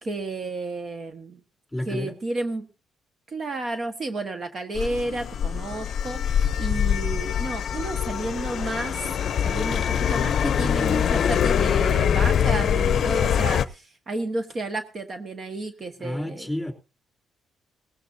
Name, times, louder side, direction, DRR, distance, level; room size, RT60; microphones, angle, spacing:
voice 1, 0.0-1.4 1.9-2.7 3.3-9.0 9.4-16.5, right 2 dB, 45° right, 1.5 m, -32 dB
voice 2, 1.7-2.1 16.0-16.7, left 1 dB, ahead, 3.0 m, -30 dB
Nightly Dutch Traffic - Train and Moped, 4.8-13.7, left 8 dB, 60° left, 0.6 m, -24 dB
18.0 x 15.5 x 2.7 m
cardioid pair, 90°, 0 cm